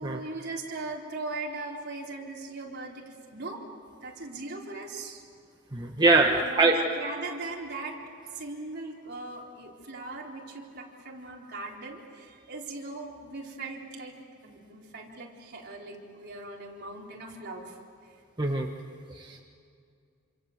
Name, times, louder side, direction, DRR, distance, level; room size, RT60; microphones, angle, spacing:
voice 1, 0.0-3.6 4.0-5.2 6.4-8.0 8.3-14.2 14.4-17.8 18.0-18.2, right 3 dB, 50° right, -1 dB, 4.0 m, -39 dB
voice 2, 5.7-6.7 18.4-18.7 19.1-19.4, right 3 dB, 20° right, 1 dB, 1.3 m, -23 dB
27.5 x 26.0 x 8.0 m, 2.4 s
head